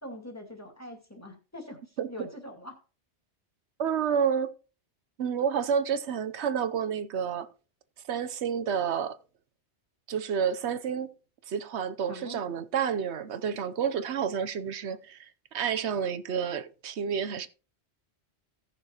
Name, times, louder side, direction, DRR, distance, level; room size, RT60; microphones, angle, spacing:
voice 1, 0.0-2.8 12.1-12.6, left 1 dB, 15° left, 2.3 m, -43 dB
voice 2, 3.8-4.5 5.2-7.5 8.1-9.2 10.1-11.1 11.5-15.3 15.5-17.5, right 7 dB, 80° right, 1.0 m, -29 dB
17.0 x 6.5 x 2.9 m
omnidirectional pair, 1.1 m